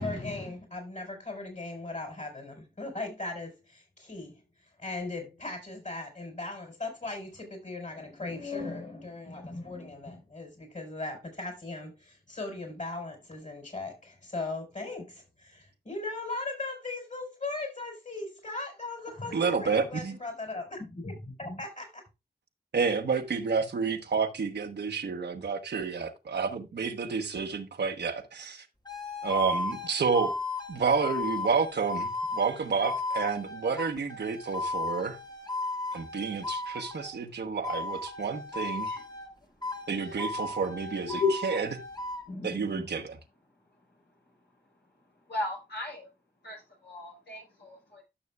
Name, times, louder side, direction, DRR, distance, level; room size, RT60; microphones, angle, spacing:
voice 1, 0.0-4.4 4.8-22.0, left 2 dB, 45° left, 4.2 m, -38 dB
voice 2, 19.3-20.2 22.7-28.7 29.2-30.3 30.7-35.2 35.9-38.9 39.9-41.7 42.4-43.2, right 5 dB, 75° right, 1.1 m, -30 dB
sound 1, 28.9-37.2 37.6-39.3 39.6-42.2, left 2 dB, 25° left, 1.5 m, -35 dB
voice 3, 42.3-42.9 45.3-46.1 46.4-48.0, left 4 dB, 80° left, 4.4 m, -34 dB
12.5 x 6.3 x 2.3 m
cardioid pair, 45°, 18 cm